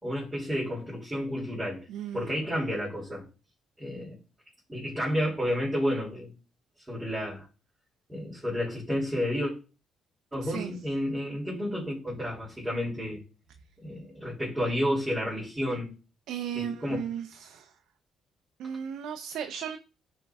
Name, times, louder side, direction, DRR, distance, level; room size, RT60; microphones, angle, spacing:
voice 1, 0.0-1.8 2.1-3.3 3.8-4.2 4.7-6.3 6.9-7.4 8.1-9.5 10.3-13.2 13.8-15.9 16.5-17.0, equal, 5° right, 3.3 m, -31 dB
voice 2, 1.9-2.3 10.4-10.7 16.3-17.7 18.6-19.8, right 8 dB, 80° right, 0.6 m, -36 dB
10.0 x 4.5 x 3.5 m
cardioid pair, 90°, 0 cm